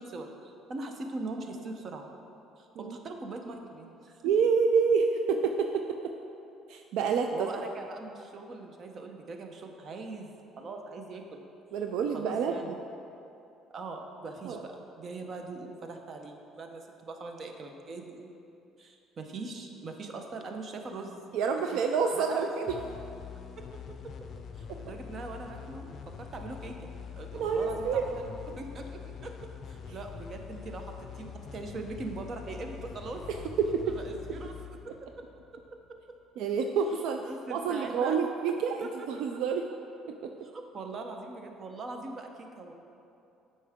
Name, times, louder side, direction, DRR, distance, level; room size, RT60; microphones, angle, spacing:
voice 1, 0.0-2.1 2.6-4.3 7.3-10.3 10.6-11.4 12.1-12.7 13.7-18.3 18.8-21.2 21.7-21.8 22.1-22.5 23.6-24.3 24.5-25.9 26.2-33.5 33.8-35.3 35.5-36.2 37.2-38.2 38.8-39.3 40.4-42.7, right 3 dB, 40° right, 4 dB, 0.7 m, -41 dB
voice 2, 4.2-5.8 6.7-7.5 11.7-12.6 14.4-14.6 21.3-22.7 27.3-28.0 33.3-33.8 36.4-37.2 37.5-39.7 40.1-40.2, right 6 dB, 75° right, 4 dB, 0.3 m, -28 dB
sound 1, 22.7-36.0, left 7 dB, 45° left, 0.4 m, -44 dB
8.2 x 5.5 x 3.6 m, 2.7 s
cardioid pair, 110°, 0 cm